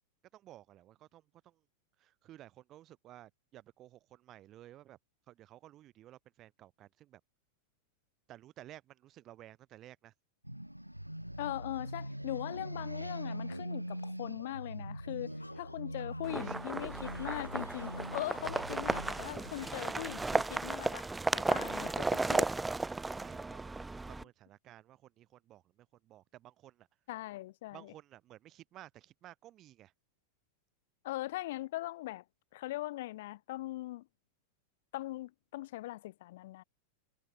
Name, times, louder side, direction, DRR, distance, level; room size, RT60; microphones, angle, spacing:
voice 1, 0.3-1.7 2.0-5.0 5.3-7.2 8.3-10.1 15.4-15.6 16.4-16.7 22.9-26.9 27.7-29.9, right 13 dB, 35° right, 6.3 m, -55 dB
sound 1, 10.4-21.2, equal, 90° right, 0.6 m, -43 dB
voice 2, 11.4-21.1 21.3-22.5 27.1-27.8 31.0-32.2 32.5-34.1 34.9-36.6, left 17 dB, 55° left, 0.7 m, -40 dB
sound 2, 15.0-20.0, left 2 dB, 80° left, 2.6 m, -57 dB
sound 3, 16.2-24.2, right 3 dB, 10° right, 0.4 m, -34 dB
figure-of-eight pair, 90°, 0 cm